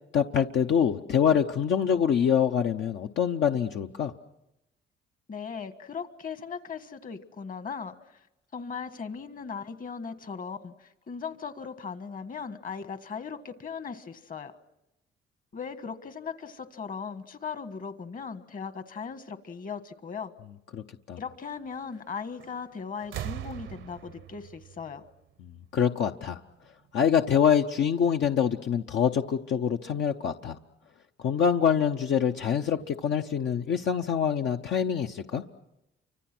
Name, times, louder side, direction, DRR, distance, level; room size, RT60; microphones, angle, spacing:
voice 1, 0.1-4.1 20.7-21.2 25.4-26.4 26.9-30.6 31.2-35.4, left 8 dB, 65° left, 4 dB, 0.8 m, -25 dB
voice 2, 5.3-8.2 8.5-14.5 15.5-20.3 21.2-25.0, left 6 dB, 45° left, 11 dB, 1.5 m, -38 dB
sound 1, 22.4-22.7 23.0-25.8 26.9-27.0, right 12 dB, 75° right, 0.8 m, -41 dB
29.0 x 25.0 x 6.1 m, 0.91 s
cardioid pair, 90°, 20 cm